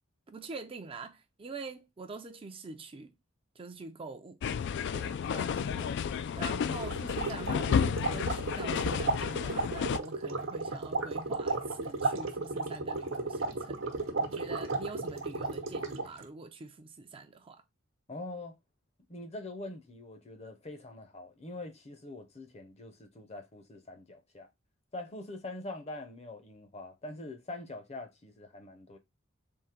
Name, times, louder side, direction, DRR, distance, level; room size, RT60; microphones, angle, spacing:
voice 1, 0.3-3.1 3.6-13.9 14.2-17.6, right 3 dB, 25° right, 0.4 m, -45 dB
sound 1, 4.4-10.0, left 7 dB, 60° left, 0.3 m, -31 dB
sound 2, 6.8-16.2, right 3 dB, 75° right, 0.9 m, -34 dB
voice 2, 18.1-18.6 19.1-24.5 24.9-29.0, left 2 dB, 35° left, 0.7 m, -44 dB
3.7 x 2.7 x 4.3 m
head